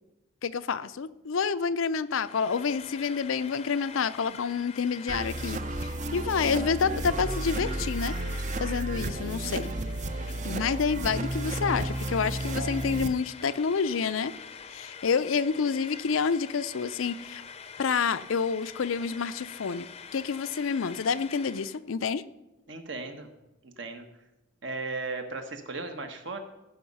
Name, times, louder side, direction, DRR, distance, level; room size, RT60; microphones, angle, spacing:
voice 1, 0.4-8.1 8.6-9.7 10.4-14.3 14.7-17.4 17.8-19.9 20.1-22.2, left 5 dB, 85° left, 14 dB, 0.5 m, -28 dB
Frying (food), 2.1-21.8, left 6 dB, 30° left, 0.6 m, -46 dB
sound 1, 5.1-13.1, right 1 dB, 35° right, 0.5 m, -32 dB
voice 2, 22.7-23.3 23.6-24.1 24.6-26.4, right 3 dB, 65° right, 6 dB, 1.4 m, -36 dB
16.0 x 5.4 x 5.5 m, 0.98 s
head